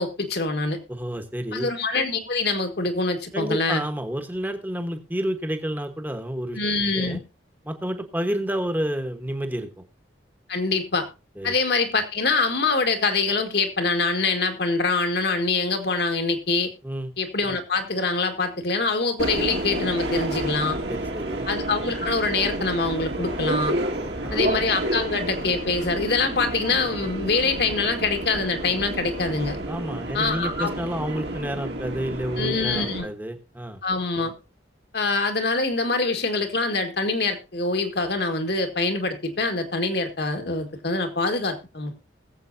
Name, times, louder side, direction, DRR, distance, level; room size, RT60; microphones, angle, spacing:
voice 1, 0.0-0.8 1.5-3.8 6.6-7.2 10.5-11.1 11.4-16.7 17.2-20.8 21.5-23.8 24.3-29.6 30.1-30.7 32.4-33.1 33.8-34.3 34.9-42.0, left 3 dB, 60° left, 6 dB, 1.8 m, -24 dB
voice 2, 0.9-1.7 3.3-6.6 6.9-7.2 7.6-9.8 11.4-11.5 16.8-17.1 20.9-21.5 24.0-24.6 29.7-33.8, equal, 10° right, 6 dB, 1.2 m, -30 dB
Subway metro underground, 19.2-33.0, right 1 dB, 60° right, 1.9 m, -30 dB
20.5 x 7.8 x 2.7 m, 0.30 s
head